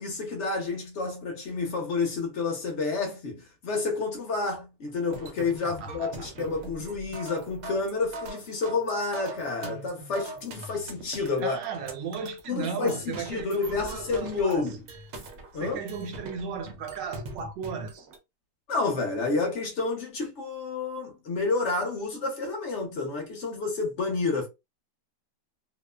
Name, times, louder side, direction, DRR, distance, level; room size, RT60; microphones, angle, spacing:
voice 1, 0.0-11.6 12.5-14.8 15.5-15.8 18.7-24.5, left 3 dB, 55° left, 0.8 m, -29 dB
sound 1, 5.1-18.2, right 2 dB, 65° right, 0.8 m, -42 dB
voice 2, 5.6-6.3 11.4-14.6 15.5-18.1, right 6 dB, 85° right, 1.3 m, -36 dB
2.9 x 2.0 x 2.2 m
omnidirectional pair, 1.9 m